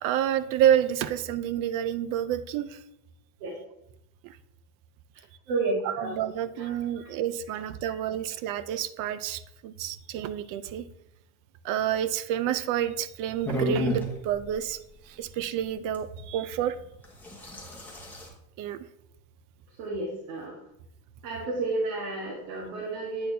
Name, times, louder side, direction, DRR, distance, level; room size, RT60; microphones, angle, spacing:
voice 1, 0.0-2.8 4.2-4.4 5.8-10.9 11.6-14.8 15.1-16.8 18.6-18.8, right 10 dB, 50° right, 14 dB, 0.4 m, -29 dB
voice 2, 5.5-6.1 6.6-6.7 6.9-7.1 19.8-20.6 21.2-23.3, right 3 dB, 65° right, -3 dB, 1.6 m, -31 dB
sound 1, 13.4-14.1 15.9-16.0 17.0-18.3, equal, 5° left, 1.0 m, -30 dB
8.5 x 4.2 x 2.7 m, 0.82 s
supercardioid pair, 130°, 44 cm